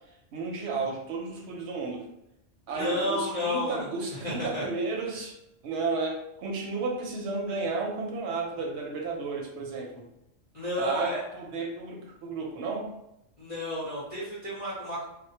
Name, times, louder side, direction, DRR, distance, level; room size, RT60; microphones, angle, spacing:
voice 1, 0.3-2.1 2.7-5.4 5.6-10.1 10.8-12.9, right 4 dB, 70° right, 1 dB, 0.8 m, -32 dB
voice 2, 2.7-3.8 4.1-4.6 10.5-11.2 13.4-15.0, left 1 dB, 35° left, -9 dB, 0.7 m, -31 dB
2.2 x 2.1 x 2.8 m, 0.83 s
omnidirectional pair, 1.3 m